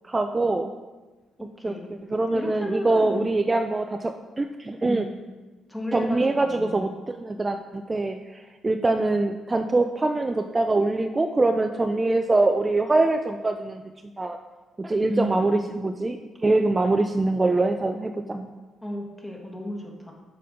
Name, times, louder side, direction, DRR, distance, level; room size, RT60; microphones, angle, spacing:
voice 1, 0.0-0.7 1.6-1.7 2.1-5.1 5.9-13.8 14.2-14.4 14.8-18.5, right 2 dB, 25° right, 6 dB, 0.4 m, -24 dB
voice 2, 2.3-3.4 4.9-5.1 5.7-6.8 15.1-15.5 18.8-20.1, left 1 dB, 10° left, 0 dB, 1.6 m, -33 dB
6.8 x 5.2 x 5.0 m, 1.2 s
cardioid pair, 90°, 0 cm